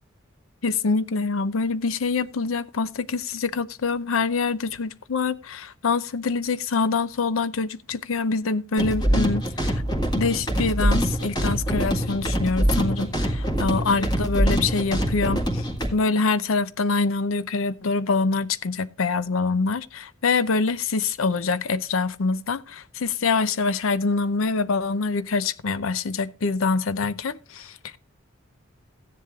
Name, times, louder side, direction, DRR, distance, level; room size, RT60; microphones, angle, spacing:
voice 1, 0.6-9.8 10.1-27.8, left 4 dB, 80° left, 0.6 m, -25 dB
sound 1, 8.8-15.9, equal, 20° left, 1.8 m, -24 dB
15.0 x 10.5 x 2.4 m
head